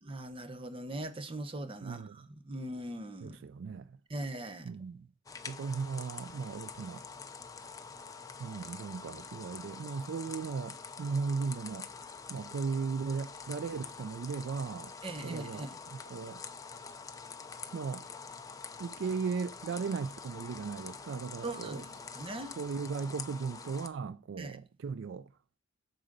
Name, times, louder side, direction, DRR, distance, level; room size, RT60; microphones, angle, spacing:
voice 1, 0.0-3.4 4.1-4.7 15.0-15.8 21.4-22.5 24.4-24.6, right 1 dB, 25° right, 0.7 m, -40 dB
voice 2, 1.8-2.2 3.2-3.9 4.6-5.1 5.5-7.0 8.4-11.9 12.3-14.9 15.2-15.7 16.1-16.4 17.7-18.1 18.8-21.8 22.6-25.3, right 5 dB, 65° right, 0.3 m, -37 dB
sound 1, 5.3-23.9, left 5 dB, 15° left, 0.6 m, -46 dB
8.8 x 3.9 x 6.6 m
head